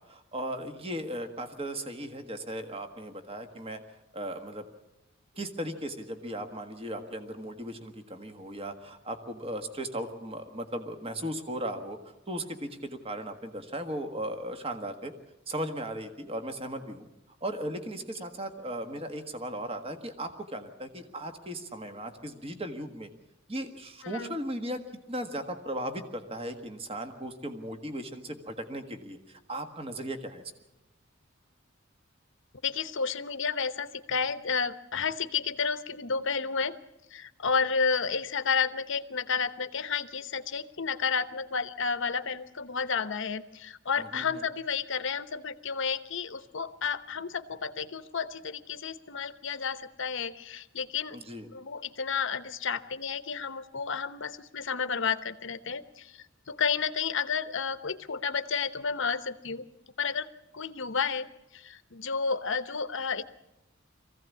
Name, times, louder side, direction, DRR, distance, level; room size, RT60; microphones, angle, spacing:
voice 1, 0.0-3.8 4.1-4.6 5.4-12.0 12.3-15.1 15.5-17.1 17.4-23.1 23.5-24.8 25.1-30.4 44.0-44.2 51.1-51.5, right 1 dB, 30° right, 6 dB, 1.6 m, -37 dB
voice 2, 32.6-36.8 37.1-51.2 51.5-59.7 60.0-60.3 60.5-61.3 61.5-63.2, left 5 dB, 65° left, 11 dB, 1.0 m, -31 dB
23.0 x 15.5 x 8.4 m, 0.94 s
head